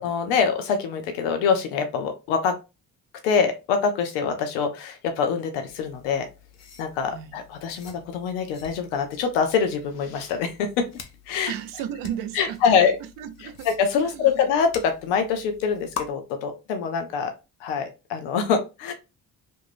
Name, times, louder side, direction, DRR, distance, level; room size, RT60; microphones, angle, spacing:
voice 1, 0.0-2.6 3.2-6.3 6.8-10.9 11.3-11.5 12.3-13.0 13.6-17.3 17.6-18.9, left 6 dB, 90° left, 0.6 m, -24 dB
sound 1, 5.7-16.1, left 7 dB, 50° left, 0.7 m, -44 dB
voice 2, 11.5-13.7 14.0-14.5, right 10 dB, 70° right, 0.5 m, -35 dB
2.5 x 2.2 x 3.2 m
supercardioid pair, 60°, 35 cm